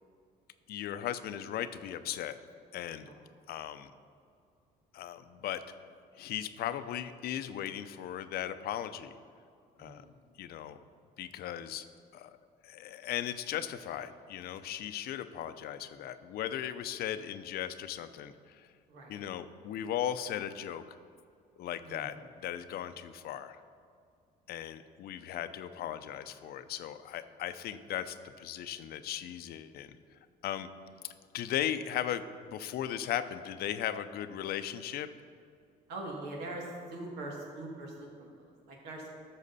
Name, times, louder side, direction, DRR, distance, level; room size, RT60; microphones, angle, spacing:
voice 1, 0.7-2.4 2.7-3.1 3.5-3.9 4.9-5.6 6.2-9.1 9.8-10.0 10.4-10.8 11.2-11.8 12.1-12.4 12.6-18.7 19.1-20.8 21.6-22.2 22.4-23.6 24.5-30.0 30.4-30.7 31.3-35.1, left 11 dB, 65° left, 11 dB, 0.6 m, -37 dB
voice 2, 9.8-10.3 18.9-19.3 21.8-22.2 35.9-38.1 38.4-39.1, right 2 dB, 85° right, -1 dB, 2.2 m, -43 dB
13.5 x 6.5 x 4.1 m, 2.3 s
cardioid pair, 110°, 17 cm